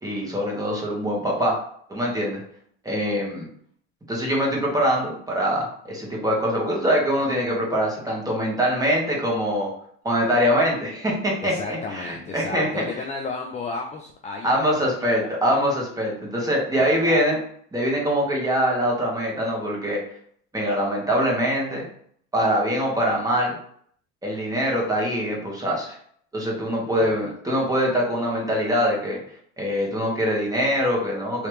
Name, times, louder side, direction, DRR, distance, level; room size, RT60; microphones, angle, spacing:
voice 1, 0.0-1.6 1.9-2.4 2.8-3.5 4.1-9.7 10.0-12.7 14.4-17.4 17.7-20.0 20.5-21.8 22.3-23.5 24.2-26.0 26.3-29.2 29.6-31.5, equal, 10° right, -3 dB, 1.4 m, -23 dB
voice 2, 11.4-15.3 16.7-17.2 27.0-27.2, left 4 dB, 20° left, 1 dB, 0.5 m, -34 dB
3.2 x 2.9 x 3.1 m, 0.62 s
supercardioid pair, 95°, 32 cm